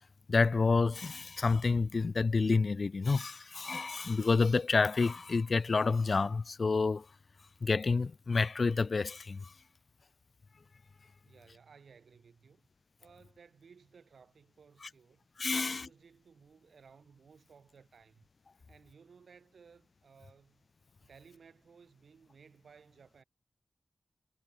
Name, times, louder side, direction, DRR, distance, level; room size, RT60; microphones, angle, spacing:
voice 1, 0.3-7.0 7.6-9.5 15.4-15.9, left 4 dB, 55° left, 0.3 m, -29 dB
voice 2, 11.2-12.7 13.0-15.2 15.6-18.3 18.7-20.7 21.0-23.2, right 6 dB, 90° right, 5.7 m, -59 dB
wide cardioid pair, 75°, 0 cm